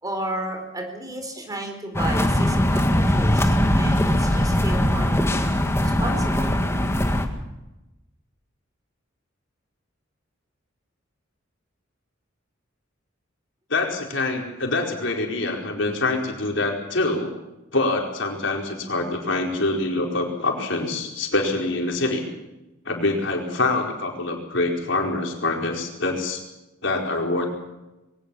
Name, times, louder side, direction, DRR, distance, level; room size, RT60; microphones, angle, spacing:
voice 1, 0.0-5.3 5.8-6.6 23.0-23.1, right 1 dB, 20° right, 5 dB, 4.1 m, -33 dB
sound 1, 1.9-7.3, left 1 dB, 15° left, 1.9 m, -21 dB
voice 2, 13.7-17.3 17.7-22.2 22.8-26.4 26.8-27.5, left 2 dB, 65° left, 1 dB, 4.7 m, -25 dB
22.0 x 19.0 x 7.1 m, 0.99 s
head